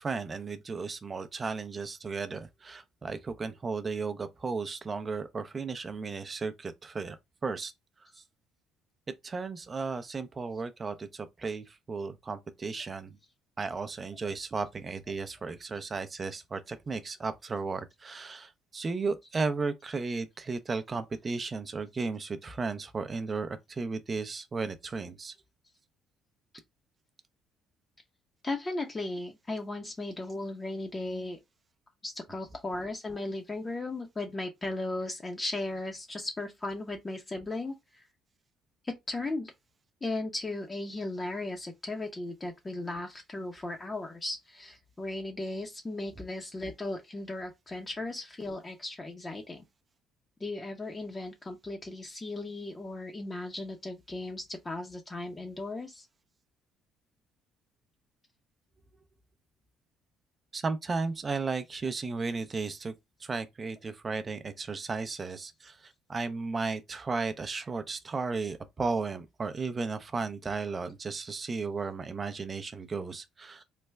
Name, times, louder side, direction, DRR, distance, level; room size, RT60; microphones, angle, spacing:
voice 1, 0.0-7.2 7.4-7.7 8.0-8.1 9.2-13.2 13.6-25.4 60.5-62.9 63.2-73.6, right 4 dB, 35° right, 0.5 m, -34 dB
voice 2, 28.4-31.4 32.0-38.1 38.8-39.5 40.0-49.6 50.4-56.1, left 2 dB, 25° left, 0.6 m, -36 dB
3.3 x 2.1 x 3.3 m
supercardioid pair, 80°, 0 cm